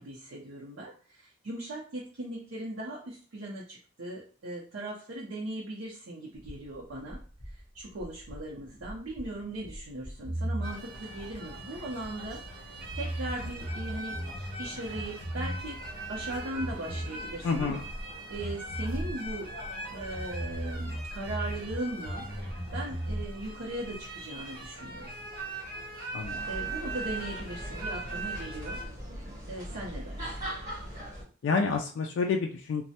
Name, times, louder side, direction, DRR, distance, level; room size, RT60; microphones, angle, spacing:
voice 1, 0.0-12.4 12.6-14.2 14.6-17.8 18.3-19.5 19.9-22.3 22.7-25.1 26.5-28.8 29.5-30.4, right 1 dB, 90° right, -5 dB, 0.6 m, -39 dB
sound 1, 6.4-12.5 12.8-15.9 16.2-18.0 18.3-21.8 22.0-23.3, right 1 dB, 30° left, 0.8 m, -37 dB
sound 2, 10.6-28.9, right 2 dB, 50° right, 0.9 m, -40 dB
voice 2, 17.4-17.8 26.1-26.4 31.4-32.8, left 4 dB, 70° left, 2 dB, 0.3 m, -28 dB
sound 3, 26.2-31.2, equal, 20° right, 1.2 m, -40 dB
3.1 x 2.0 x 2.7 m, 0.41 s
head